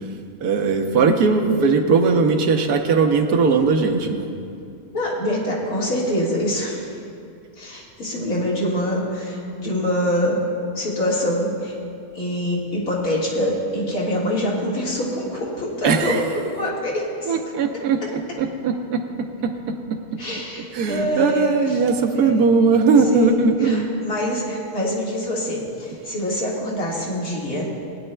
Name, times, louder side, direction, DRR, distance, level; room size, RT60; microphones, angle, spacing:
voice 1, 0.4-4.3 15.8-16.2 17.3-19.0 19.4-19.5 20.7-23.9, right 4 dB, 85° right, 4 dB, 1.3 m, -19 dB
voice 2, 4.9-6.9 7.6-10.4 10.7-11.7 12.1-16.2 16.5-17.3 18.0-18.1 20.2-21.8 22.1-22.4 23.1-27.7, equal, 70° left, -5 dB, 2.3 m, -25 dB
18.5 x 9.4 x 2.2 m, 2.5 s
omnidirectional pair, 1.6 m